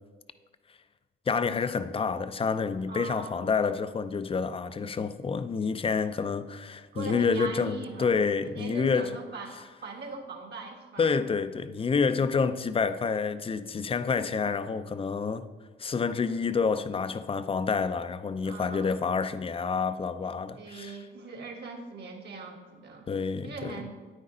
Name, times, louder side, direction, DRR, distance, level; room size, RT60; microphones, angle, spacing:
voice 1, 1.3-9.1 11.0-15.5 15.8-20.9 23.1-23.8, left 5 dB, 30° left, 0.5 m, -28 dB
voice 2, 2.9-3.5 6.9-11.2 18.4-19.0 20.5-23.1 23.4-24.1, right 4 dB, 55° right, 1.7 m, -41 dB
9.7 x 9.0 x 3.8 m
cardioid pair, 90°, 20 cm